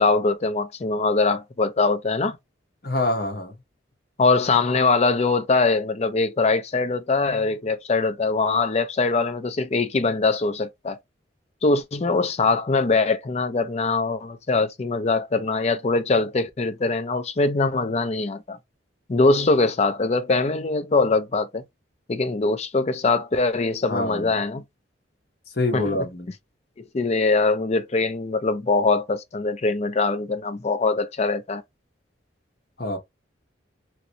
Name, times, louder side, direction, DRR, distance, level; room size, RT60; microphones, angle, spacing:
voice 1, 0.0-2.4 4.2-11.0 11.6-18.6 19.1-21.6 22.1-24.6 25.7-26.0 26.8-31.6, left 3 dB, 35° left, 0.4 m, -22 dB
voice 2, 2.8-3.6 23.9-24.3 25.6-26.3 32.8-33.0, left 2 dB, 50° left, 1.1 m, -25 dB
2.9 x 2.7 x 2.9 m
head